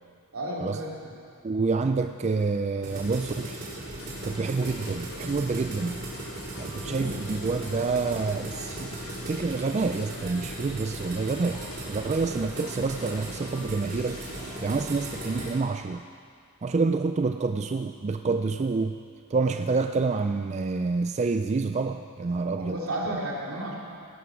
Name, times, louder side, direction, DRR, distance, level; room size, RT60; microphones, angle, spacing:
voice 1, 0.3-1.1 6.8-7.2 12.2-12.5 19.4-19.5 22.5-23.7, right 1 dB, 75° right, -3 dB, 3.0 m, -33 dB
voice 2, 1.4-3.6 4.2-6.0 6.6-16.0 16.6-19.0 19.3-22.8 23.1-23.2, right 4 dB, 30° right, 7 dB, 0.4 m, -28 dB
sound 1, 2.8-15.5, right 1 dB, 45° right, 4.0 m, -38 dB
sound 2, 3.9-15.6, left 1 dB, 90° left, 1.8 m, -45 dB
17.5 x 11.0 x 6.0 m, 2.3 s
head